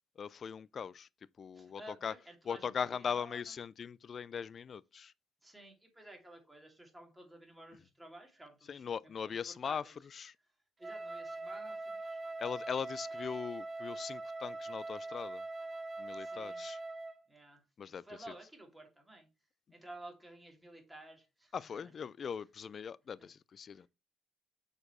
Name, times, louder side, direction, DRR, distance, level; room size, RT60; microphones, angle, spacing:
voice 1, 0.2-1.1 1.4-2.1 2.5-5.1 8.7-9.8 10.1-10.3 12.4-15.4 16.0-16.8 17.8-18.0 21.5-23.9, left 7 dB, 50° left, 0.3 m, -40 dB
voice 2, 1.5-3.5 5.4-10.0 10.8-12.2 16.2-16.6 17.3-19.3 19.7-21.9 23.7-23.8, right 1 dB, 10° right, 2.6 m, -54 dB
Wind instrument woodwind instrument, 10.8-17.2, right 2 dB, 25° right, 0.6 m, -42 dB
6.7 x 4.4 x 4.3 m
cardioid pair, 80°, 0 cm